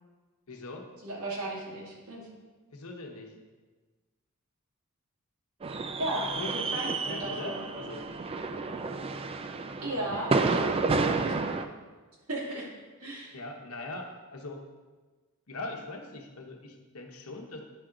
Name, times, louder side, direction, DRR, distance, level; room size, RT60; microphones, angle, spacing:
voice 1, 0.5-0.9 2.7-3.4 6.4-8.1 13.3-14.6 15.5-17.6, left 2 dB, 80° left, 2 dB, 1.0 m, -41 dB
voice 2, 1.0-2.2 6.0-7.6 9.8-10.6 10.9-11.3 12.3-12.7 13.0-13.3, right 1 dB, 90° right, -4 dB, 2.4 m, -35 dB
sound 1, 5.6-11.7, right 4 dB, 25° right, 0.4 m, -30 dB
9.6 x 5.9 x 3.8 m, 1.3 s
head